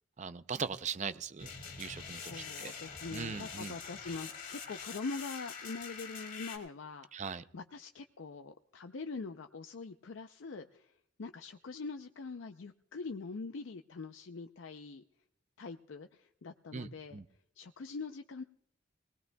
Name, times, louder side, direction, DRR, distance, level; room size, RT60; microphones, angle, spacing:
voice 1, 0.2-1.5 1.8-2.3 2.6-2.7 3.1-3.8 7.1-7.4 16.7-17.2, right 5 dB, 40° right, 13 dB, 0.5 m, -39 dB
sound 1, 1.4-6.6, left 6 dB, 45° left, 2.3 m, -45 dB
voice 2, 1.9-10.9 11.2-15.0 15.6-17.2 17.6-18.4, left 4 dB, 85° left, 7 dB, 0.5 m, -44 dB
19.5 x 19.5 x 2.2 m, 0.73 s
head